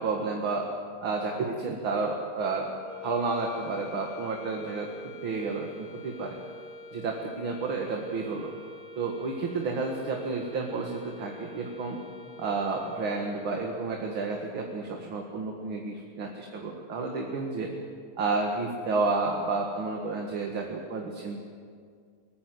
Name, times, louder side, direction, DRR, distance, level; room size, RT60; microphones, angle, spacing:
voice 1, 0.0-0.7 1.0-2.7 3.0-4.9 5.2-6.4 6.9-8.5 9.0-12.0 12.4-17.7 18.2-21.4, right 3 dB, 70° right, 1 dB, 2.6 m, -31 dB
sound 1, 2.8-13.7, left 3 dB, 65° left, 4.6 m, -46 dB
23.0 x 20.5 x 7.8 m, 2.1 s
omnidirectional pair, 2.3 m